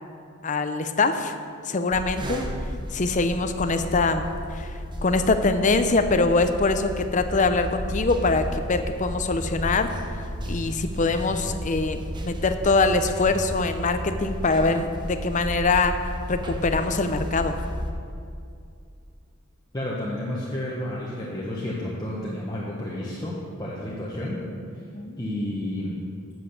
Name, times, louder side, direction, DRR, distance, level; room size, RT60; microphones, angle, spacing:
voice 1, 0.4-1.3 1.6-2.4 2.9-4.3 4.5-4.7 5.0-16.0 16.3-17.6 24.9-25.2, left 3 dB, 35° left, 8 dB, 0.6 m, -23 dB
sound 1, 1.9-17.9, equal, 20° right, 0.8 m, -33 dB
voice 2, 19.7-24.4 25.2-26.0, left 1 dB, 20° left, -6 dB, 1.1 m, -31 dB
8.4 x 7.4 x 6.6 m, 2.4 s
head